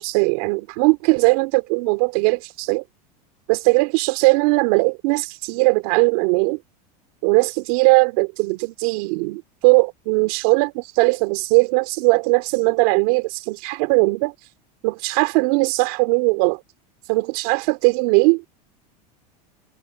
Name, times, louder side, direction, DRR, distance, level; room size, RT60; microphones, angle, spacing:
voice 1, 0.0-2.8 3.5-6.6 7.2-14.3 14.8-16.6 17.1-18.4, right 29 dB, 65° right, 2.6 m, -19 dB
hypercardioid pair, 105°, 21 cm